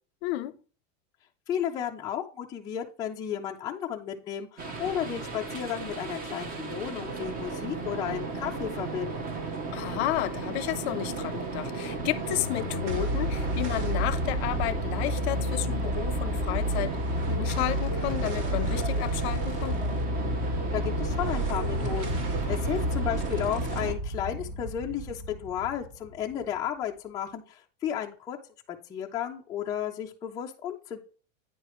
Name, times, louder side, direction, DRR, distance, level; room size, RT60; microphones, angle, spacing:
voice 1, 0.2-0.6 9.7-16.9 17.3-19.8, left 16 dB, 55° left, 0.6 m, -32 dB
voice 2, 1.5-9.4 20.5-22.2 22.5-28.4 28.7-31.0, left 9 dB, 10° left, 0.4 m, -33 dB
sound 1, 4.6-23.9, right 3 dB, 25° right, 0.8 m, -35 dB
sound 2, 12.0-26.6, equal, 65° right, 2.1 m, -31 dB
9.1 x 4.7 x 3.0 m
supercardioid pair, 155°, 38 cm